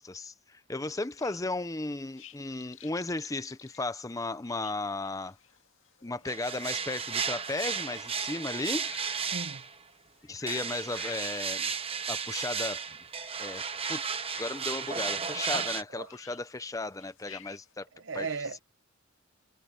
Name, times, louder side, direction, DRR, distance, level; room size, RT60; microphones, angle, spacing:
voice 1, 0.0-5.4 6.0-9.2 10.3-11.7 12.1-12.8 13.4-13.6 13.9-14.0 14.4-17.9 18.1-18.3, left 2 dB, 15° left, 0.6 m, -35 dB
sound 1, 0.8-17.7, left 8 dB, 60° left, 2.2 m, -53 dB
sound 2, 6.3-9.8 10.5-15.8, right 6 dB, 25° right, 1.1 m, -34 dB
voice 2, 9.3-9.6 15.5-15.7 15.9-16.1 17.9-18.6, right 4 dB, 55° right, 0.9 m, -36 dB
head